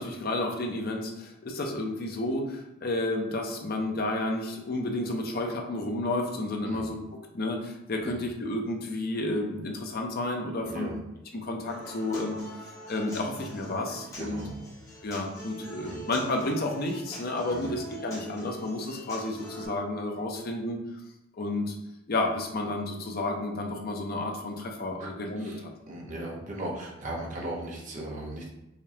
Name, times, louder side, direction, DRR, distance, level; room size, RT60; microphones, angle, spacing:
voice 1, 0.0-7.0 7.3-10.9 11.3-12.4 12.9-14.4 15.0-20.8 21.4-21.8 22.1-25.7, left 2 dB, 45° left, 2 dB, 0.5 m, -31 dB
voice 2, 10.6-11.0 14.1-14.7 15.8-16.0 17.5-17.8 25.0-25.1 25.4-28.5, right 1 dB, 35° right, -2 dB, 0.7 m, -37 dB
Human voice / Acoustic guitar, 11.7-19.7, equal, 15° left, 0.8 m, -44 dB
4.9 x 2.2 x 2.7 m, 0.90 s
head